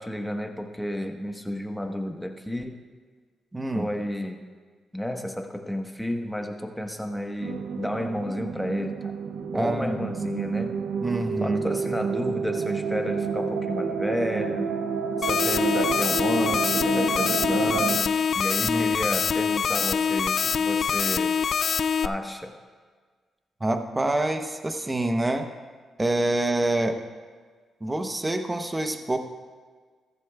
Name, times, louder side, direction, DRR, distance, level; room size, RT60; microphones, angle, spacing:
voice 1, 0.0-2.8 3.7-4.4 4.9-9.1 9.5-10.7 11.4-14.7 15.2-21.3 22.0-22.5, left 1 dB, 5° left, 3 dB, 1.2 m, -31 dB
voice 2, 3.5-3.9 9.5-10.0 11.0-11.6 18.6-19.2 23.6-25.5 26.0-26.9 27.8-29.2, right 2 dB, 20° right, 6 dB, 0.8 m, -26 dB
sound 1, 7.4-18.0, right 5 dB, 85° right, 0.5 m, -29 dB
sound 2, 15.2-22.1, left 6 dB, 55° left, 0.3 m, -24 dB
14.5 x 14.5 x 2.4 m, 1.5 s
cardioid pair, 90°, 0 cm